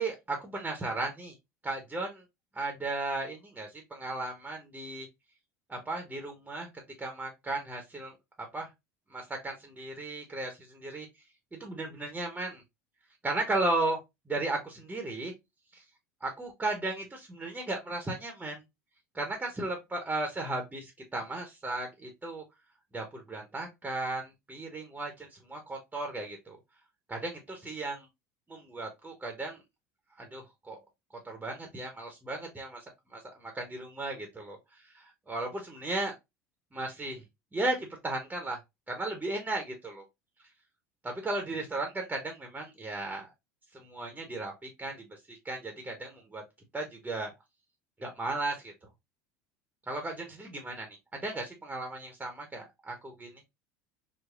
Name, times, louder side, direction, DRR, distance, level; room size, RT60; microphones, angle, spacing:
voice 1, 0.0-1.3 1.6-2.2 2.5-5.1 5.7-6.7 7.0-8.7 9.1-11.1 11.5-12.6 13.2-14.0 14.3-15.3 15.7-15.8 16.2-18.6 19.1-22.4 22.9-26.6 27.1-28.1 28.5-29.6 30.2-30.8 31.2-32.8 33.1-36.2 36.7-37.2 37.5-38.6 38.9-40.0 41.0-43.3 43.7-46.4 46.7-47.3 48.0-48.7 49.9-53.4, right 2 dB, 15° right, 3 dB, 0.9 m, -35 dB
4.0 x 2.2 x 2.4 m, 0.21 s
hypercardioid pair, 75°, 9 cm